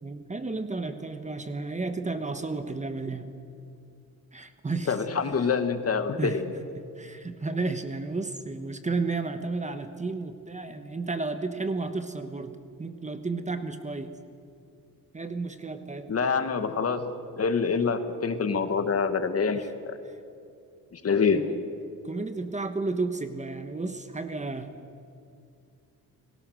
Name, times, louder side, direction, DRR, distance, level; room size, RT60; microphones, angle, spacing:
voice 1, 0.0-3.3 4.3-4.9 6.2-6.4 7.0-14.1 15.1-16.1 19.5-19.7 21.3-21.6 22.0-24.7, right 3 dB, 20° right, 9 dB, 1.3 m, -32 dB
voice 2, 4.9-6.5 16.1-20.0 20.9-21.4, left 5 dB, 40° left, 9 dB, 1.7 m, -26 dB
29.5 x 19.0 x 6.4 m, 2.4 s
cardioid pair, 105°, 36 cm